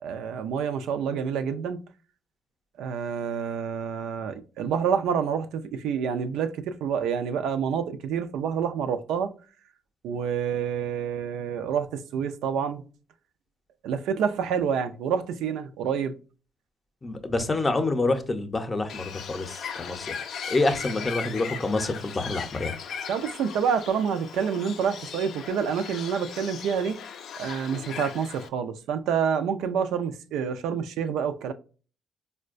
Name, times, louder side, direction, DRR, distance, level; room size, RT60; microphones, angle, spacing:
voice 1, 0.0-1.8 2.8-9.3 10.0-12.8 13.8-16.1 17.3-17.4 23.1-27.0 27.4-31.5, right 7 dB, 85° right, 0.3 m, -28 dB
voice 2, 17.0-20.1 20.5-22.7, left 2 dB, 25° left, 0.6 m, -27 dB
Bird, 18.9-28.5, left 7 dB, 70° left, 0.4 m, -38 dB
4.4 x 2.1 x 2.4 m
cardioid pair, 90°, 0 cm